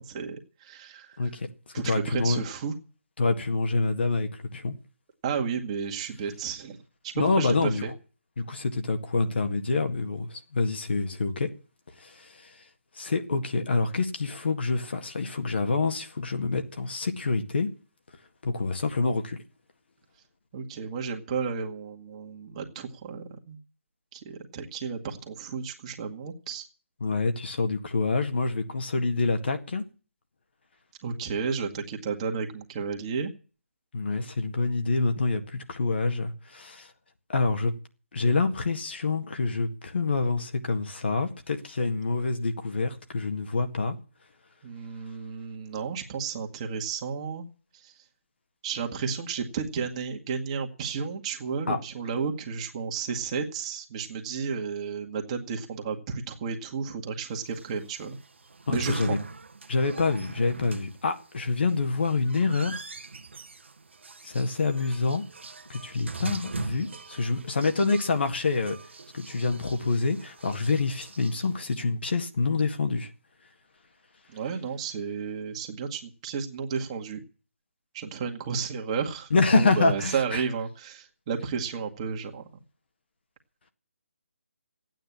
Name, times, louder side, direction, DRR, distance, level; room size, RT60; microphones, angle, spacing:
voice 1, 0.0-1.3 1.7-2.8 5.2-6.8 7.0-7.9 20.5-23.6 24.1-26.6 31.0-33.3 44.6-47.5 47.7-48.0 48.6-58.2 58.7-59.2 74.3-77.2 77.9-82.6, right 6 dB, 25° right, 2.0 m, -32 dB
voice 2, 1.2-1.5 1.8-2.4 3.2-4.7 7.2-7.8 8.4-11.5 12.0-12.5 13.0-17.7 18.4-19.4 27.0-29.8 33.9-36.9 37.3-37.7 38.1-44.0 51.7-51.8 58.7-59.2 59.7-62.8 64.2-65.2 65.7-68.8 69.1-73.1 79.3-80.4, left 3 dB, 55° left, 1.9 m, -27 dB
sound 1, 57.5-71.8, right 4 dB, 60° right, 1.2 m, -41 dB
15.0 x 9.3 x 8.6 m
figure-of-eight pair, 145°, 7 cm